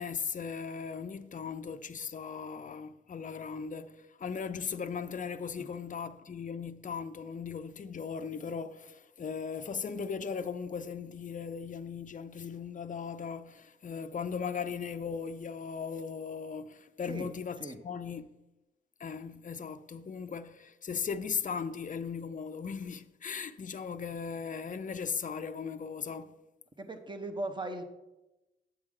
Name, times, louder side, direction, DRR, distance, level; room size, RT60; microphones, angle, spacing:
voice 1, 0.0-18.3 19.0-26.4, left 6 dB, 40° left, 0.5 m, -38 dB
voice 2, 26.8-27.8, right 2 dB, 25° right, 1.0 m, -38 dB
8.7 x 7.8 x 3.7 m
cardioid pair, 70°, 20 cm